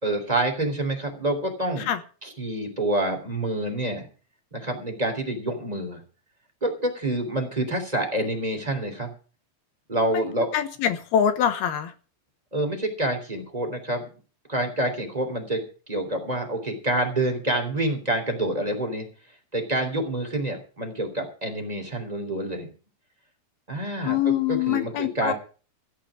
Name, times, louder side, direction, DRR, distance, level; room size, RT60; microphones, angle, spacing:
voice 1, 0.0-1.9 2.2-4.1 4.5-6.0 6.6-9.1 9.9-10.5 12.5-14.0 14.5-15.6 15.9-19.0 19.5-22.7 23.7-25.3, right 1 dB, 10° right, 2.6 m, -27 dB
voice 2, 10.5-11.9 24.0-25.3, left 9 dB, 70° left, 2.8 m, -24 dB
15.5 x 5.6 x 10.0 m
omnidirectional pair, 5.2 m